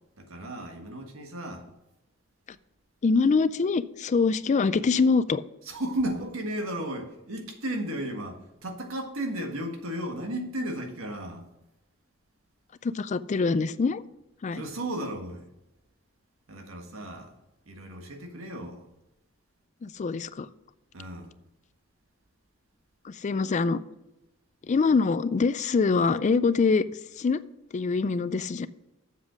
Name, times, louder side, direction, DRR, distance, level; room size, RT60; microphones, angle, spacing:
voice 1, 0.2-1.6 5.7-11.4 14.5-15.4 16.5-17.3 17.7-18.9 20.9-21.3, right 1 dB, 80° right, 1.6 m, -34 dB
voice 2, 3.0-5.4 12.8-14.0 14.4-14.6 19.8-20.5 23.0-23.8 24.7-26.8 27.2-27.4 27.7-28.7, left 4 dB, 35° left, 0.4 m, -24 dB
7.5 x 7.2 x 6.2 m
head